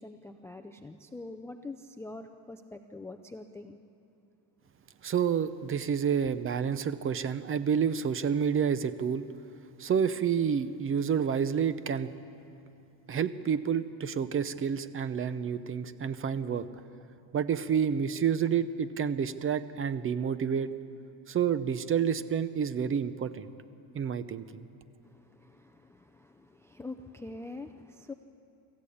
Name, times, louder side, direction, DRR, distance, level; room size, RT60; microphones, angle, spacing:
voice 1, 0.0-3.8 25.0-28.1, left 2 dB, 5° left, 7 dB, 0.4 m, -44 dB
voice 2, 5.0-9.2 9.8-12.1 13.1-16.7 17.3-20.7 21.3-23.5 23.9-24.6, right 7 dB, 25° right, 14 dB, 0.7 m, -29 dB
25.5 x 14.5 x 8.5 m, 2.7 s
cardioid pair, 140°, 47 cm